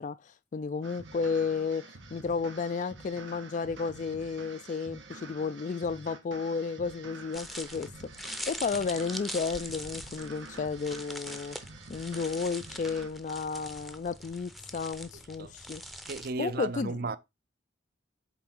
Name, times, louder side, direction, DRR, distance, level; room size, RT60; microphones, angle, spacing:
voice 1, 0.0-11.6 11.9-15.8 16.4-16.9, left 5 dB, 40° left, 0.3 m, -33 dB
sound 1, 0.8-13.1, right 3 dB, 90° right, 1.5 m, -48 dB
sound 2, 7.3-16.3, equal, ahead, 0.6 m, -43 dB
voice 2, 15.1-15.6 16.0-17.2, right 3 dB, 55° right, 0.6 m, -35 dB
8.1 x 3.5 x 6.0 m
head